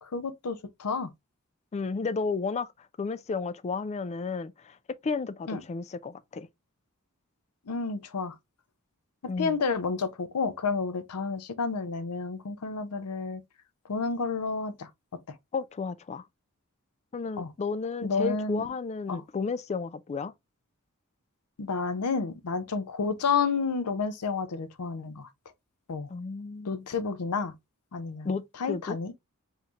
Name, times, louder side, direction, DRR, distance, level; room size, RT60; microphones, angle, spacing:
voice 1, 0.0-1.1 5.5-5.6 7.7-8.3 9.4-13.4 13.9-14.9 15.3-15.4 17.4-17.5 18.0-18.6 19.1-19.2 21.6-25.3 25.9-26.1 26.6-27.5 27.9-28.3 28.6-29.1, left 4 dB, 90° left, 0.6 m, -30 dB
voice 2, 1.7-2.7 3.0-4.8 5.0-6.5 9.3-9.6 15.5-16.2 17.1-20.3 26.1-26.8 28.2-28.4 28.7-29.0, left 4 dB, 30° left, 0.3 m, -32 dB
5.6 x 3.1 x 2.4 m
head